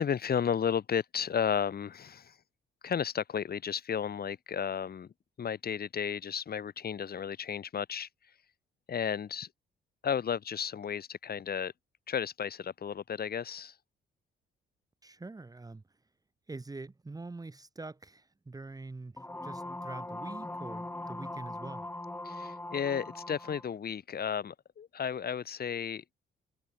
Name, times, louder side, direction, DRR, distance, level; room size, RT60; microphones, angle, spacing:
voice 1, 0.0-2.4 2.8-8.1 8.9-9.5 10.0-11.7 12.1-13.8 22.2-26.0, left 7 dB, 50° left, 3.7 m, -33 dB
voice 2, 15.0-15.8 16.5-21.9, right 3 dB, 20° right, 1.5 m, -45 dB
sound 1, 19.2-23.7, left 1 dB, 10° left, 2.3 m, -40 dB
cardioid pair, 90°, 20 cm